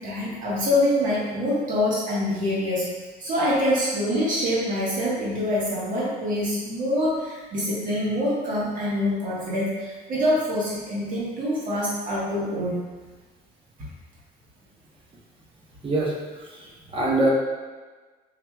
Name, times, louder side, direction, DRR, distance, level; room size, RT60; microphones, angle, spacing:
voice 1, 0.0-2.9 3.2-12.8, left 1 dB, 50° right, -7 dB, 1.5 m, -25 dB
voice 2, 15.8-17.3, right 2 dB, 30° right, -4 dB, 1.1 m, -25 dB
5.6 x 2.9 x 2.4 m, 1.3 s
cardioid pair, 110°, 17 cm